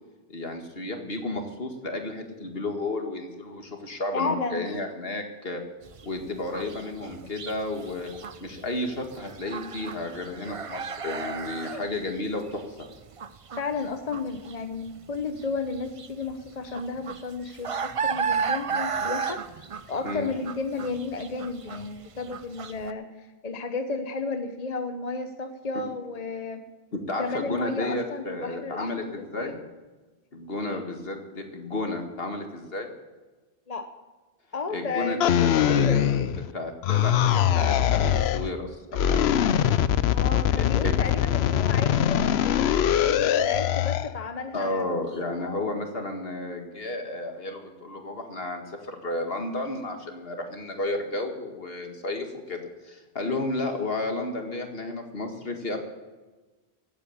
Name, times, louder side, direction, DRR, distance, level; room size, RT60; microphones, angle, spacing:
voice 1, 0.3-5.6 6.0-8.1 8.4-12.8 20.0-20.3 26.9-29.6 30.3-32.9 34.7-36.3 36.5-38.8 39.1-39.4 40.6-41.1 44.5-55.8, left 2 dB, 70° left, 4 dB, 2.2 m, -32 dB
voice 2, 4.1-4.7 13.6-26.6 27.1-29.6 30.6-30.8 33.7-33.9 34.5-36.0 40.1-44.8 45.4-45.6 53.2-53.4, left 4 dB, 40° left, 7 dB, 1.0 m, -33 dB
sound 1, 5.9-22.9, right 6 dB, 40° right, 0.6 m, -34 dB
sound 2, 35.2-36.5 36.8-38.5 38.9-44.1, left 10 dB, 90° left, 0.9 m, -22 dB
16.0 x 8.9 x 7.2 m, 1.2 s
omnidirectional pair, 1.0 m